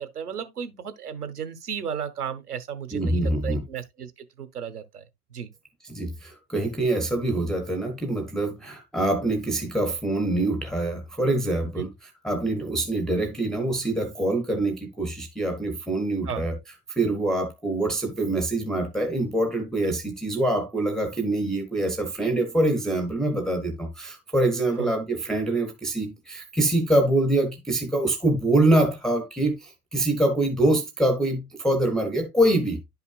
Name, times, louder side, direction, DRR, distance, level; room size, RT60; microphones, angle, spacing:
voice 1, 0.0-4.1 4.4-5.0 5.3-5.5 11.8-11.9 16.2-16.5 19.8-19.9 24.8-24.9, right 8 dB, 75° right, 1.3 m, -34 dB
voice 2, 2.9-3.6 5.9-16.6 16.9-32.9, right 1 dB, ahead, 0.5 m, -25 dB
10.5 x 5.5 x 2.3 m
figure-of-eight pair, 110°, 46 cm